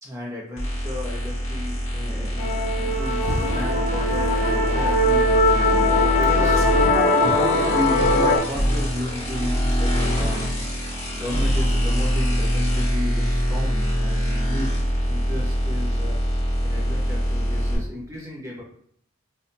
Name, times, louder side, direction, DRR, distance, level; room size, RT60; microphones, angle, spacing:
voice 1, 0.0-5.9 6.2-6.8 7.2-10.6 11.1-16.1 16.6-18.6, left 1 dB, 15° right, -4 dB, 1.0 m, -33 dB
sound 1, 0.6-17.8, equal, 35° left, 1.3 m, -24 dB
Musical instrument, 2.4-8.4, left 2 dB, 70° left, 0.7 m, -21 dB
4.5 x 2.7 x 2.2 m, 0.64 s
head